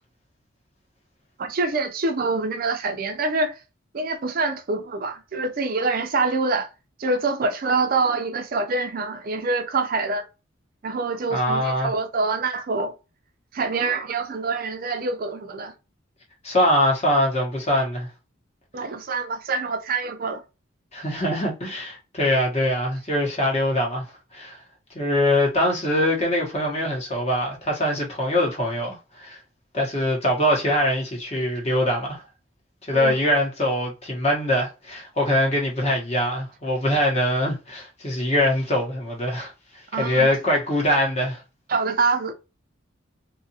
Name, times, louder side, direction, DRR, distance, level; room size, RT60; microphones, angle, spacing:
voice 1, 1.4-3.6 3.9-6.7 7.0-10.2 10.8-12.9 13.5-15.7 18.7-20.4 32.9-33.2 39.9-40.3 41.7-42.3, right 3 dB, 45° right, 0.4 m, -25 dB
voice 2, 11.3-11.9 16.4-18.1 20.9-24.0 24.3-24.6 24.9-29.4 29.7-32.2 32.9-39.5 40.0-41.4, left 1 dB, 30° left, 0.9 m, -23 dB
2.7 x 2.4 x 2.7 m
head